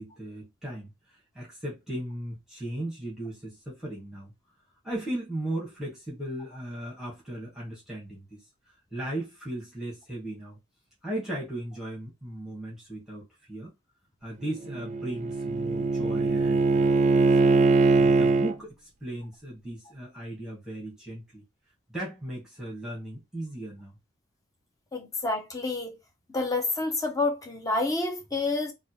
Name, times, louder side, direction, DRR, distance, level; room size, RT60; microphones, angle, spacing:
voice 1, 0.0-4.3 4.8-10.6 11.0-13.7 14.2-17.2 18.0-21.4 21.9-24.0, right 1 dB, 5° right, 1.3 m, -37 dB
Bowed string instrument, 14.5-18.5, right 3 dB, 35° right, 0.3 m, -22 dB
voice 2, 24.9-25.9 26.3-28.7, left 2 dB, 15° left, 0.6 m, -28 dB
3.3 x 2.3 x 2.8 m
head